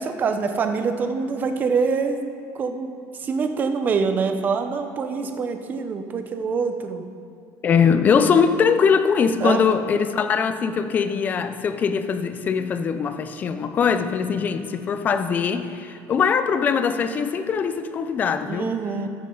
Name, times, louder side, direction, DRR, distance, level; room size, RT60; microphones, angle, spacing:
voice 1, 0.0-2.2 2.5-2.9 3.2-7.0 9.4-9.6 18.5-19.1, right 5 dB, 20° right, 6 dB, 0.6 m, -25 dB
voice 2, 7.6-18.7, left 6 dB, 20° left, 10 dB, 0.4 m, -21 dB
14.5 x 8.2 x 3.8 m, 2.6 s
cardioid pair, 180°, 8 cm